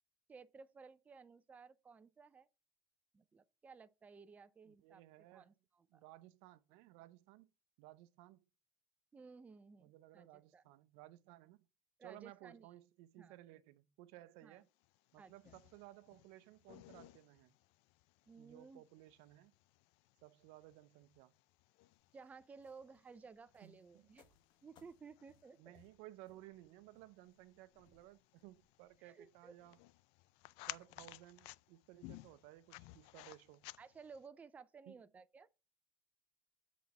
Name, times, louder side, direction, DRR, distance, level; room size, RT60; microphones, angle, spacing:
voice 1, 0.3-2.5 3.1-5.0 5.3-6.0 9.1-10.6 12.0-12.7 13.2-13.4 14.4-14.6 15.2-15.5 18.3-18.8 22.1-24.3 24.6-25.8 29.0-29.5 33.8-35.5, right 5 dB, 15° right, 0.4 m, -57 dB
voice 2, 4.6-5.5 5.9-7.5 7.8-8.4 9.8-11.7 12.0-14.7 15.1-17.5 18.4-19.5 20.2-21.3 23.6-24.1 25.6-29.8 30.7-33.6 34.9-35.0, right 16 dB, 70° right, 0.6 m, -58 dB
sound 1, 14.8-34.3, left 19 dB, 70° left, 0.4 m, -58 dB
sound 2, 21.9-28.9, left 5 dB, 45° left, 1.2 m, -72 dB
7.7 x 4.1 x 4.8 m
cardioid pair, 135°, 11 cm